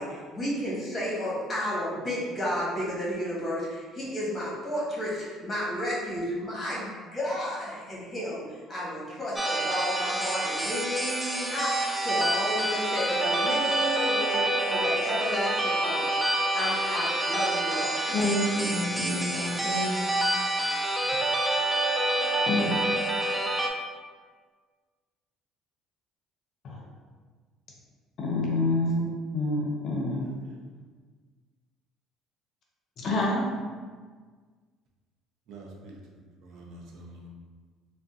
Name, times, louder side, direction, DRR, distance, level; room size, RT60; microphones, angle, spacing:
voice 1, 0.0-8.4 8.7-11.7 12.0-16.2 16.5-18.0, equal, 25° left, -7 dB, 1.2 m, -32 dB
sound 1, 9.4-23.7, right 1 dB, 5° right, 0.3 m, -27 dB
voice 2, 18.1-20.2 22.5-22.8 26.6-26.8 28.2-30.2 33.0-33.4, left 1 dB, 50° left, -2 dB, 0.6 m, -28 dB
voice 3, 30.1-30.6 35.5-36.2 36.4-37.3, right 2 dB, 75° right, -1 dB, 0.5 m, -46 dB
3.5 x 2.1 x 2.5 m, 1.5 s
cardioid pair, 115°, 0 cm